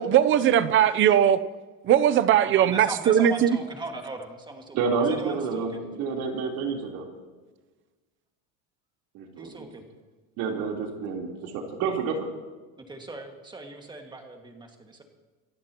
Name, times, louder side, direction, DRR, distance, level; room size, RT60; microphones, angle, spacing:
voice 1, 0.0-1.4 1.8-3.5, right 10 dB, 30° right, 0.7 m, -19 dB
voice 2, 2.3-5.8 9.4-9.9 12.9-15.0, right 2 dB, 10° right, 2.0 m, -39 dB
voice 3, 4.7-7.1 9.1-9.7 10.4-12.3, right 5 dB, 60° right, 3.8 m, -29 dB
27.0 x 15.0 x 3.0 m
cardioid pair, 155°, 39 cm